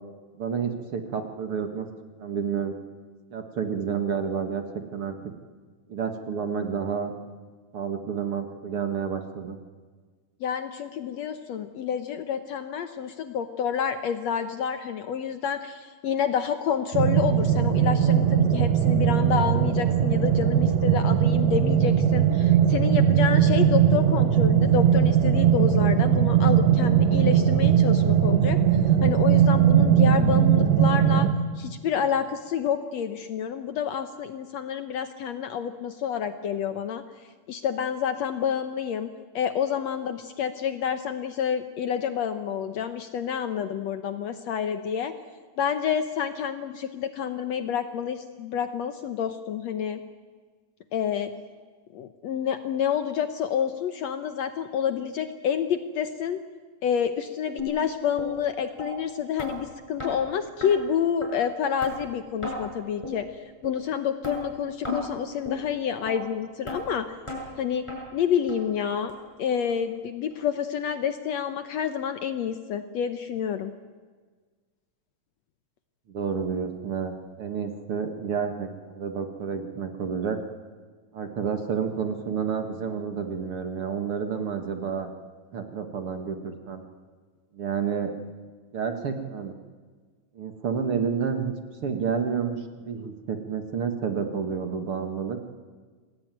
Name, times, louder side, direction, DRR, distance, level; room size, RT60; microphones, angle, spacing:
voice 1, 0.4-1.9 2.2-2.7 3.3-4.6 4.9-5.2 5.9-7.1 7.7-9.6 76.1-80.4 81.1-85.1 85.5-86.8 87.5-88.1 88.7-89.5 90.4-95.4, right 6 dB, 50° right, 6 dB, 2.2 m, -30 dB
voice 2, 10.4-31.3 31.6-37.0 37.5-45.1 45.6-50.0 50.9-51.3 51.9-56.4 56.8-67.2 67.6-67.8 68.1-73.7, left 8 dB, 65° left, 9 dB, 1.9 m, -28 dB
sound 1, 16.9-31.3, right 9 dB, 85° right, 3.2 m, -20 dB
sound 2, 57.6-57.7 58.2-58.3 58.8-58.9 59.4-59.5 60.0-60.1 60.6-60.7 61.2-61.3 61.8-61.9 62.4-62.6 63.0-63.2 63.6-63.7 64.2-64.4 64.8-65.0 65.4-65.6 66.1-66.2 66.7-66.8 67.3-67.4 67.9-68.0 68.5-68.6 69.1-69.2 69.7-69.8 70.3-70.4, left 3 dB, 10° left, 7.5 m, -33 dB
27.0 x 20.0 x 9.3 m, 1.5 s
omnidirectional pair, 3.8 m